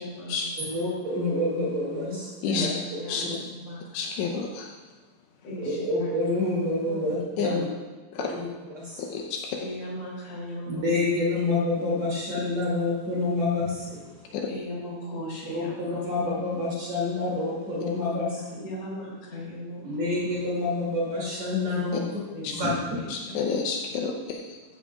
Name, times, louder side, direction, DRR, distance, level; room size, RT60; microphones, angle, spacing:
voice 1, 0.0-0.5 2.1-4.2 5.4-6.1 6.9-7.1 7.4-7.6 9.6-10.9 14.5-16.0 18.1-20.1 22.3-23.4, equal, 55° left, -5 dB, 4.7 m, -38 dB
voice 2, 0.6-3.3 5.6-7.6 8.2-8.4 8.7-9.2 10.6-14.4 15.4-18.6 19.8-22.2 22.5-22.7, left 2 dB, 40° right, -5 dB, 3.3 m, -28 dB
voice 3, 3.9-4.7 7.4-7.5 8.2-8.3 9.0-9.6 14.3-14.5 22.4-22.5 23.1-24.4, left 5 dB, 80° left, 1 dB, 2.9 m, -29 dB
15.5 x 12.0 x 2.4 m, 1.3 s
omnidirectional pair, 5.2 m